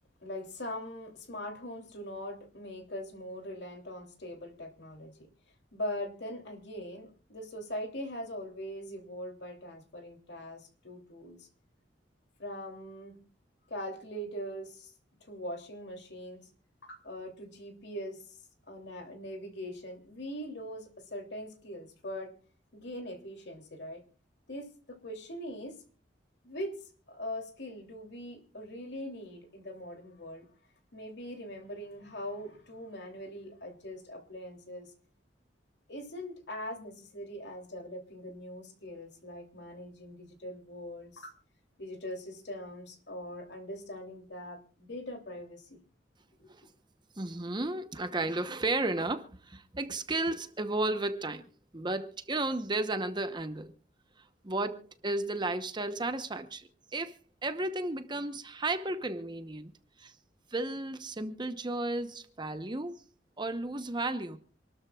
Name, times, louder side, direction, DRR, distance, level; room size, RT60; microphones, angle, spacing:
voice 1, 0.2-5.3 5.7-11.5 12.4-13.1 13.7-14.9 15.3-16.5 16.8-18.4 18.7-22.3 22.7-24.0 24.5-25.8 26.4-30.5 30.9-34.9 35.9-41.3 41.8-45.8 46.4-46.5, equal, 65° left, 3.0 m, -41 dB
voice 2, 47.2-51.4 51.7-53.7 54.4-57.1 57.4-59.7 60.0-60.1 60.5-63.0 63.4-64.4, right 2 dB, 25° right, 0.9 m, -33 dB
27.0 x 13.0 x 2.4 m
head